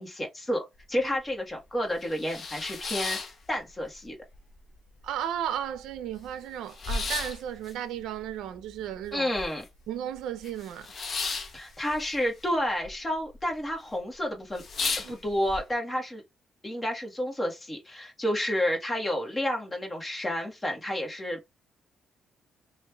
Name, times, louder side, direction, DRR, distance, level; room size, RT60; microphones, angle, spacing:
voice 1, 0.0-3.2 3.5-4.1 9.1-9.6 11.5-14.6 15.1-16.2 16.6-21.5, equal, 20° left, 1.4 m, -30 dB
sound 1, 0.8-0.9 1.3-1.4 1.8-4.0 4.3-5.1 5.4-5.5 5.7-9.8 10.1-12.9 13.2-13.7 14.1-14.2 14.5-15.6, left 4 dB, 45° left, 0.8 m, -35 dB
voice 2, 5.0-9.3 9.9-10.9 15.0-15.2, right 10 dB, 85° right, 0.4 m, -34 dB
3.1 x 2.4 x 3.3 m
cardioid pair, 90°, 0 cm